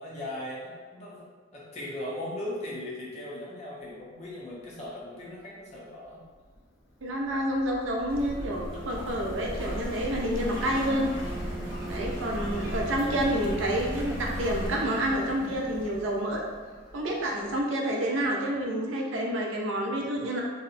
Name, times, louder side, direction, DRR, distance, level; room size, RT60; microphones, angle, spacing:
voice 1, 0.0-6.2, left 1 dB, 35° left, -5 dB, 0.5 m, -38 dB
Subway metro underground, 6.3-17.6, equal, 80° left, 0.5 m, -40 dB
voice 2, 7.0-11.1 11.8-16.4 16.9-20.4, right 1 dB, 80° right, -1 dB, 0.4 m, -29 dB
sound 1, 8.1-14.7, equal, 25° right, 0.6 m, -36 dB
2.7 x 2.0 x 2.5 m, 1.4 s
head